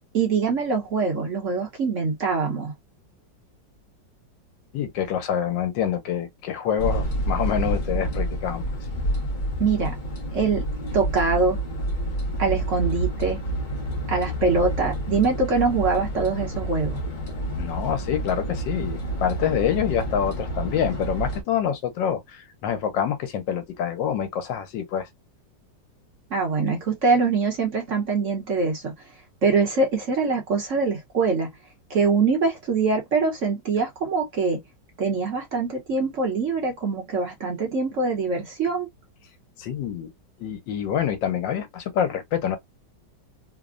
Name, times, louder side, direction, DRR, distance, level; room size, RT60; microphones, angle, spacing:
voice 1, 0.1-2.7 9.6-9.9 10.3-10.6 10.9-11.6 12.4-13.4 14.1-17.0 26.3-28.9 29.4-31.5 31.9-34.6 35.0-38.9, right 4 dB, 50° right, 1.0 m, -23 dB
voice 2, 4.7-8.6 17.6-25.1 39.6-40.1 40.4-42.6, left 9 dB, 85° left, 1.4 m, -26 dB
sound 1, 6.8-21.4, right 1 dB, 55° left, 0.5 m, -29 dB
3.3 x 2.1 x 2.4 m
omnidirectional pair, 2.0 m